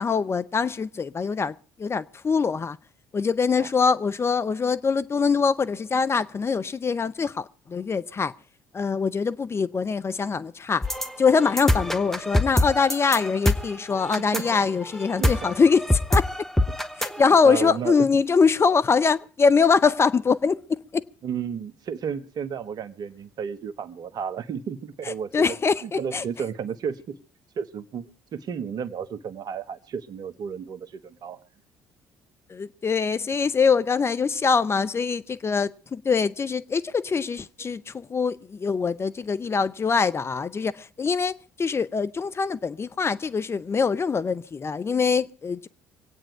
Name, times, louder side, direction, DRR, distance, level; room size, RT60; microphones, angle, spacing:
voice 1, 0.0-2.8 3.1-8.3 8.7-10.9 11.2-16.5 17.0-21.0 25.1-26.2 32.5-45.7, left 5 dB, 30° left, 0.7 m, -23 dB
sound 1, 10.8-17.2, left 1 dB, 5° left, 1.4 m, -25 dB
voice 2, 13.9-14.5 15.2-15.4 17.4-17.9 21.2-25.6 25.8-27.2 27.5-31.4, right 7 dB, 55° right, 1.3 m, -33 dB
24.5 x 9.1 x 4.6 m
hypercardioid pair, 55°, 8 cm